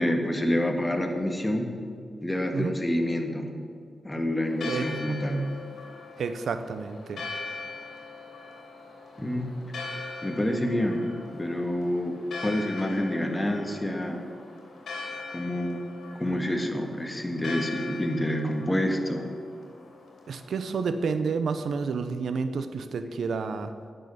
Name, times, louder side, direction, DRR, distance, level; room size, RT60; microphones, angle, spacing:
voice 1, 0.0-1.7 2.2-3.5 4.0-5.4 9.2-9.5 10.2-14.2 15.3-15.8 16.1-19.2, left 1 dB, 15° left, 4 dB, 1.7 m, -28 dB
Church bell, 4.4-21.1, left 4 dB, 85° left, 2.5 m, -41 dB
voice 2, 6.2-7.2 20.3-23.7, right 5 dB, 80° right, 9 dB, 0.7 m, -30 dB
10.5 x 6.6 x 8.5 m, 2.1 s
cardioid pair, 70°, 0 cm